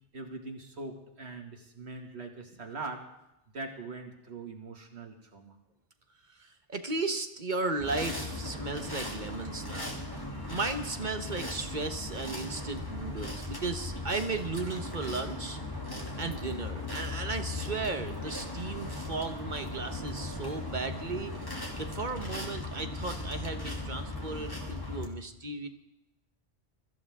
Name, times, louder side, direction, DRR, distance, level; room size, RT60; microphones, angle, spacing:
voice 1, 0.1-3.1 3.5-5.6, right 3 dB, 70° right, 3 dB, 2.4 m, -42 dB
voice 2, 6.3-15.6 16.2-21.3 21.8-25.7, right 3 dB, 45° right, 8 dB, 1.3 m, -35 dB
sound 1, 7.8-25.1, left 2 dB, 20° left, 2.7 m, -38 dB
23.0 x 14.5 x 3.6 m, 0.87 s
omnidirectional pair, 1.2 m